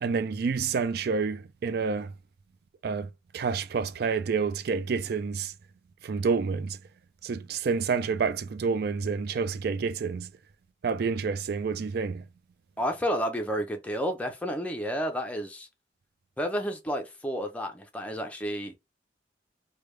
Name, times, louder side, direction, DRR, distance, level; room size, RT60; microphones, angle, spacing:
voice 1, 0.0-2.1 2.8-3.1 3.3-5.5 6.0-6.8 7.2-10.3 10.8-12.2, right 5 dB, 55° right, 0.4 m, -28 dB
voice 2, 12.8-15.7 16.4-18.7, equal, 10° left, 0.5 m, -31 dB
3.3 x 2.3 x 3.2 m
head